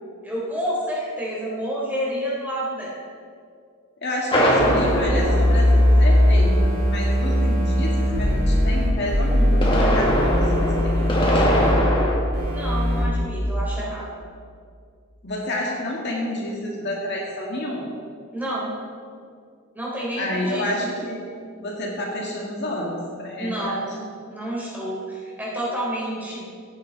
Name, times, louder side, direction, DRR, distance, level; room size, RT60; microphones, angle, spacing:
voice 1, 0.2-2.9 12.5-14.1 18.3-18.7 19.7-20.9 23.4-24.0 24.3-26.5, right 1 dB, 10° right, -6 dB, 3.9 m, -29 dB
voice 2, 4.0-11.6 15.2-17.9 20.2-21.2 21.6-23.8, left 1 dB, 50° left, -2 dB, 2.1 m, -29 dB
sound 1, 4.3-6.4 9.3-12.1, equal, 25° left, 1.9 m, -22 dB
sound 2, 4.6-11.7 12.3-13.0, equal, 50° right, 3.8 m, -19 dB
17.0 x 10.0 x 4.1 m, 2.3 s
head